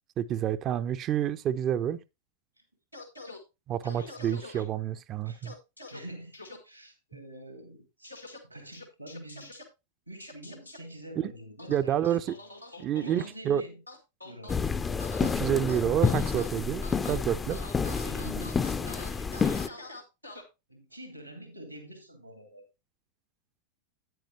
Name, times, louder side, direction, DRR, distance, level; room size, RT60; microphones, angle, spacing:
voice 1, 0.2-2.0 3.7-5.5 11.2-11.3 11.7-12.4 12.8-13.6 15.3-17.6, right 10 dB, 30° right, 0.5 m, -29 dB
sound 1, 2.9-3.4 3.8-4.6 5.4-6.0 6.3-6.6 8.0-8.4 8.7-9.6 10.2-10.8 11.6-13.3 13.9-14.6 15.0-15.3 15.7-16.5 16.8-17.2 17.5-20.4, left 2 dB, 90° left, 1.9 m, -45 dB
voice 2, 5.9-6.4 6.6-8.2 8.4-9.5 10.1-12.4 12.7-13.8 14.2-14.6 17.8-20.0 20.7-22.7, right 1 dB, 90° right, 2.3 m, -46 dB
sound 2, 14.5-19.7, left 5 dB, 15° left, 0.5 m, -29 dB
9.3 x 9.1 x 2.9 m
figure-of-eight pair, 90°, 0 cm